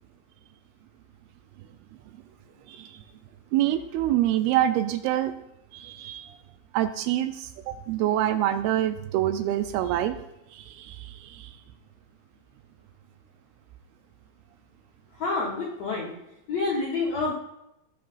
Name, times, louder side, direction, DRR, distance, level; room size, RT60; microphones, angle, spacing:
voice 1, 2.7-3.0 3.5-5.4 5.7-6.4 6.7-10.2 10.5-11.5, right 12 dB, 80° right, 9 dB, 2.3 m, -26 dB
voice 2, 15.1-16.1 16.5-17.3, left 3 dB, 70° left, -4 dB, 1.5 m, -28 dB
18.5 x 6.7 x 2.5 m, 0.86 s
omnidirectional pair, 4.6 m